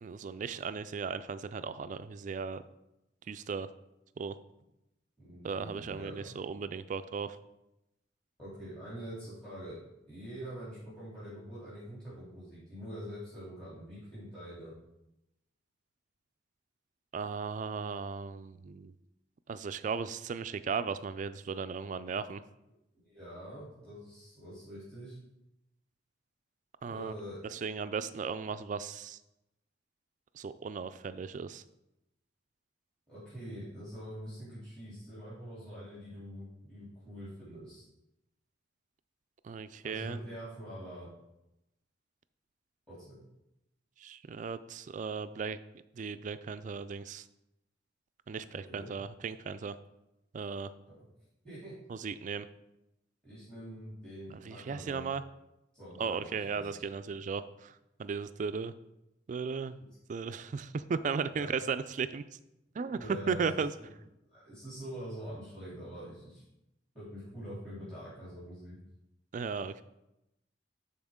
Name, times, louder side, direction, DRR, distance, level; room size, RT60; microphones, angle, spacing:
voice 1, 0.0-2.6 3.3-3.7 4.2-4.4 5.4-7.4 17.1-18.9 19.5-22.4 26.8-27.1 27.5-29.2 30.3-31.6 39.4-40.2 44.0-45.6 46.0-47.2 48.3-49.8 50.3-50.7 51.9-52.5 54.3-55.2 56.0-57.7 58.0-58.7 59.3-59.8 60.1-62.2 62.7-63.7 69.3-69.8, right 5 dB, 40° right, 13 dB, 0.3 m, -36 dB
voice 2, 5.2-6.5 8.4-9.8 10.1-14.7 23.0-25.2 26.9-27.4 33.1-37.8 39.8-41.1 42.9-43.2 48.5-48.9 50.9-51.0 51.4-51.7 53.2-55.1 55.7-56.2 56.5-56.8 61.3-61.5 62.9-63.4 64.3-66.4 66.9-68.8, equal, 5° left, -12 dB, 3.1 m, -45 dB
11.5 x 4.3 x 3.6 m, 0.89 s
head